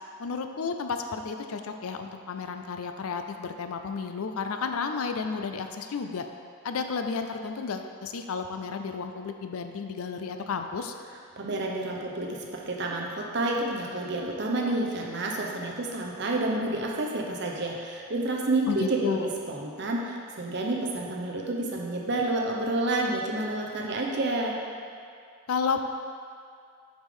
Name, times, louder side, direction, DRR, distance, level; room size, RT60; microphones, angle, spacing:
voice 1, 0.2-6.3 6.6-10.9 18.7-19.3 25.5-25.8, left 5 dB, 85° left, 6 dB, 0.5 m, -32 dB
voice 2, 11.4-24.6, right 2 dB, 50° right, -1 dB, 0.8 m, -29 dB
7.1 x 5.1 x 3.7 m, 2.3 s
head